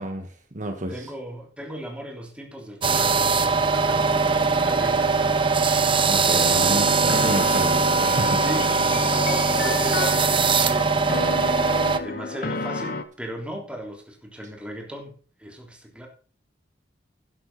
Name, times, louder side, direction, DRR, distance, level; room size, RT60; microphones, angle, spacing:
voice 1, 0.0-1.1 5.8-8.4, right 1 dB, 45° right, 5 dB, 1.4 m, -31 dB
voice 2, 0.9-5.9 8.4-15.1 15.4-16.1, equal, 5° right, 1 dB, 3.4 m, -37 dB
sound 1, 2.8-12.0, right 4 dB, 30° right, 1.0 m, -21 dB
sound 2, 6.3-13.0, left 3 dB, 55° left, 1.5 m, -31 dB
12.5 x 10.0 x 4.1 m, 0.38 s
head